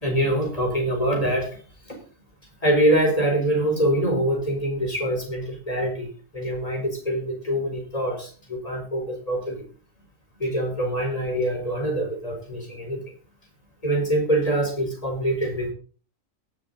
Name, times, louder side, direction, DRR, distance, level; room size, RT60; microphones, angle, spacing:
voice 1, 0.0-1.6 1.9-2.0 2.6-9.6 10.4-13.0 13.8-15.7, right 1 dB, 30° left, 1 dB, 4.6 m, -24 dB
18.0 x 7.7 x 4.0 m, 0.39 s
omnidirectional pair, 1.4 m